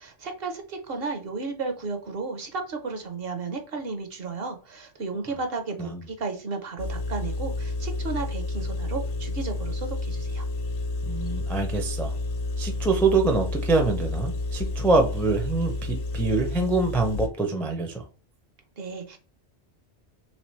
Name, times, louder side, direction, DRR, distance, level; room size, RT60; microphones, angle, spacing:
voice 1, 0.0-10.4 18.8-19.2, right 4 dB, 60° right, 6 dB, 0.9 m, -33 dB
Engine, 6.8-17.3, left 2 dB, 65° left, 0.9 m, -30 dB
voice 2, 11.0-12.1 12.6-18.0, right 3 dB, ahead, 2 dB, 0.4 m, -25 dB
3.3 x 3.2 x 3.1 m, 0.37 s
omnidirectional pair, 1.2 m